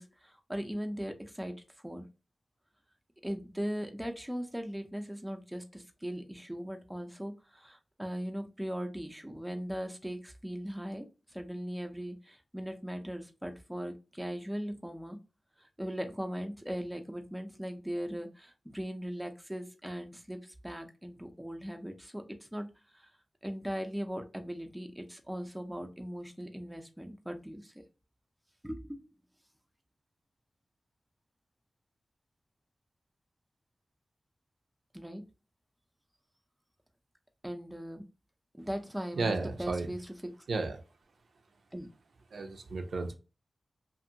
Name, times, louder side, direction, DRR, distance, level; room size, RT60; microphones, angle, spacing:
voice 1, 0.0-1.5 1.8-2.1 3.2-11.1 11.3-15.2 15.6-22.7 22.9-23.1 23.4-27.7 28.6-29.0 34.9-35.2 37.4-38.0 38.6-40.0 41.7-41.9, equal, 5° right, 5 dB, 0.5 m, -39 dB
voice 2, 39.1-39.9 40.5-40.8 42.3-43.1, right 3 dB, 85° right, 4 dB, 0.5 m, -33 dB
2.7 x 2.6 x 2.6 m, 0.31 s
wide cardioid pair, 70°, 0 cm